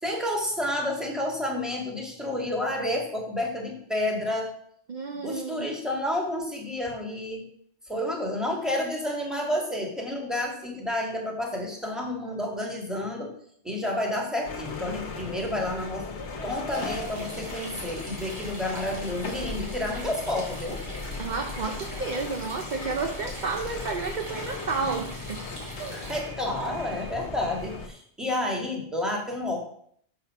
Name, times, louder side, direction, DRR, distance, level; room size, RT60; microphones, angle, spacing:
voice 1, 0.0-4.5 5.1-7.5 7.9-13.3 13.6-16.2 16.4-20.8 25.9-29.6, left 1 dB, ahead, 0 dB, 1.7 m, -30 dB
voice 2, 4.9-5.8 21.2-25.5 25.8-26.0, right 4 dB, 50° right, 4 dB, 0.7 m, -31 dB
sound 1, 14.4-27.9, left 3 dB, 80° left, 1.4 m, -37 dB
sound 2, 16.7-26.2, right 1 dB, 70° right, 2.8 m, -42 dB
6.5 x 6.1 x 5.6 m, 0.65 s
omnidirectional pair, 1.1 m